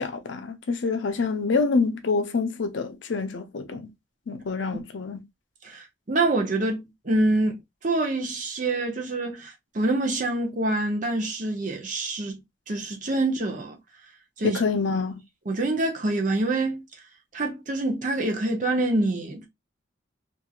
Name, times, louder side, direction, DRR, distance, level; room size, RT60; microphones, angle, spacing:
voice 1, 0.0-3.9 4.3-5.2 14.4-15.2, left 4 dB, 85° left, 0.6 m, -26 dB
voice 2, 5.6-7.5 7.8-12.4 12.7-13.8 14.4-14.6 15.5-16.8 17.3-19.5, right 2 dB, 45° right, 0.7 m, -26 dB
2.9 x 2.5 x 2.2 m
head